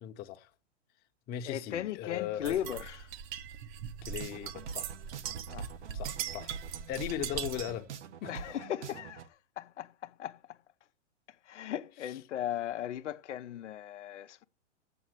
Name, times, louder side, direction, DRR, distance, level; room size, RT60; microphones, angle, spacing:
voice 1, 0.0-0.5 1.3-2.6 4.0-4.9 5.9-6.6 6.9-7.9 8.2-8.3, left 11 dB, 25° left, 0.9 m, -38 dB
voice 2, 1.4-3.1 5.5-5.7 8.3-10.6 11.3-14.5, left 11 dB, 80° left, 0.7 m, -38 dB
sound 1, 2.4-7.8, right 8 dB, 40° right, 0.8 m, -40 dB
sound 2, 4.0-9.3, right 6 dB, 75° right, 1.2 m, -45 dB
7.8 x 6.3 x 7.8 m
hypercardioid pair, 130°, 35 cm